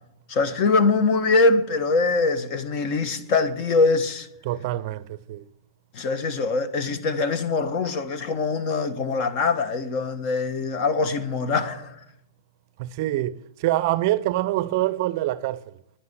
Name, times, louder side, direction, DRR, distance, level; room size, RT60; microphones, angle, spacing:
voice 1, 0.3-4.3 5.9-11.9, left 3 dB, 40° left, 1.4 m, -23 dB
voice 2, 4.4-5.0 5.3-5.4 12.8-15.6, right 15 dB, 50° right, 0.6 m, -25 dB
10.5 x 9.6 x 9.7 m
hypercardioid pair, 130°, 2 cm